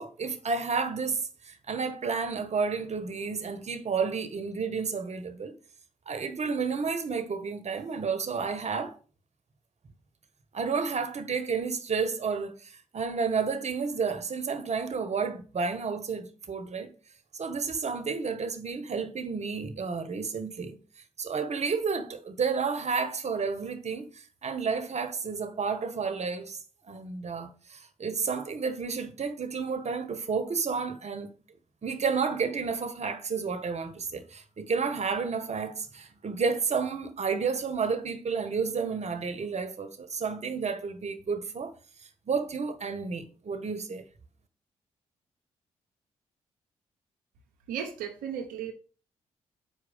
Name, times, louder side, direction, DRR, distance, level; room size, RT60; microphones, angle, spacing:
voice 1, 0.0-5.5 6.1-8.9 10.5-16.9 17.3-20.8 21.2-26.6 26.9-31.3 31.8-41.7 42.3-44.0, right 5 dB, 50° right, 1.5 m, -31 dB
voice 2, 47.7-48.7, right 8 dB, 90° right, 0.9 m, -35 dB
8.1 x 4.8 x 5.5 m
supercardioid pair, 50°, 14 cm